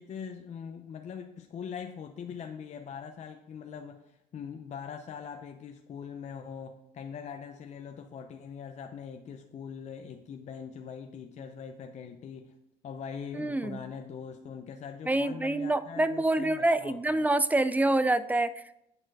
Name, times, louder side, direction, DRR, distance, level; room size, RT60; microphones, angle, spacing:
voice 1, 0.0-12.5 12.8-17.2, left 7 dB, 45° left, 5 dB, 0.6 m, -42 dB
voice 2, 13.3-13.8 15.1-18.8, right 2 dB, 10° right, 14 dB, 0.3 m, -27 dB
8.7 x 4.4 x 4.7 m, 0.85 s
cardioid pair, 110°, 17 cm